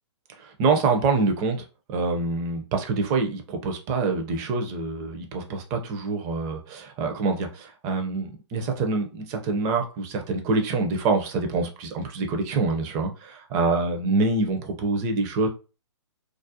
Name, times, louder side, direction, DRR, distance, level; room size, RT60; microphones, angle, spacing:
voice 1, 0.4-15.5, right 3 dB, 20° right, 0.4 m, -26 dB
2.4 x 2.0 x 2.6 m
hypercardioid pair, 135°, 15 cm